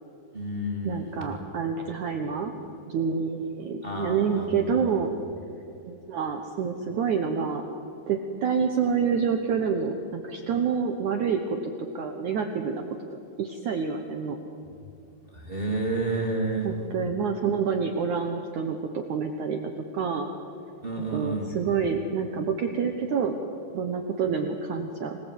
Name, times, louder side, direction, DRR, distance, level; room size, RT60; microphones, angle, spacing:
voice 1, 0.3-1.2 3.8-4.9 15.3-16.7 20.8-21.5, right 2 dB, 20° right, 1 dB, 1.5 m, -30 dB
voice 2, 0.9-2.5 2.9-5.1 5.8-7.6 8.1-12.8 13.4-14.4 16.6-19.6 19.9-20.3 21.1-23.3 23.7-25.2, right 6 dB, 75° right, 5 dB, 1.7 m, -27 dB
26.0 x 19.5 x 8.4 m, 2.8 s
omnidirectional pair, 5.2 m